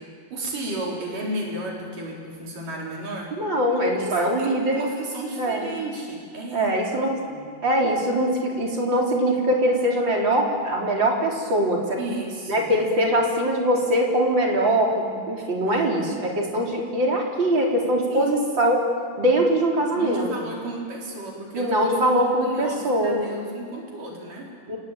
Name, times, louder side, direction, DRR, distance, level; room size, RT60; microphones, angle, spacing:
voice 1, 0.3-6.8 7.3-7.5 12.0-12.7 15.6-16.2 18.1-18.4 19.9-24.5, right 1 dB, 70° right, -2 dB, 5.8 m, -33 dB
voice 2, 3.4-4.8 5.4-5.7 6.5-7.2 7.6-12.0 12.5-18.8 19.2-20.3 21.5-23.3 24.7-24.8, right 1 dB, 35° right, -1 dB, 4.4 m, -22 dB
28.5 x 18.5 x 8.9 m, 2.1 s
omnidirectional pair, 3.9 m